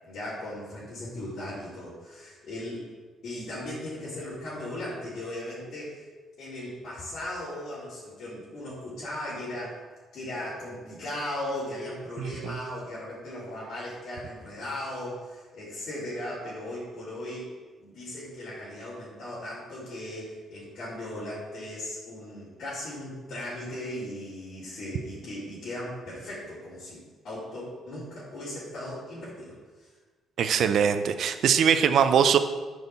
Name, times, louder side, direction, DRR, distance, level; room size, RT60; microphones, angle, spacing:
voice 1, 0.0-2.9 3.2-6.1 6.4-9.8 10.1-17.5 17.8-29.9, left 1 dB, 60° left, -11 dB, 4.0 m, -37 dB
voice 2, 12.2-12.5 30.4-32.4, right 7 dB, 60° right, 10 dB, 0.8 m, -22 dB
9.3 x 6.5 x 7.1 m, 1.3 s
cardioid pair, 135°, 0 cm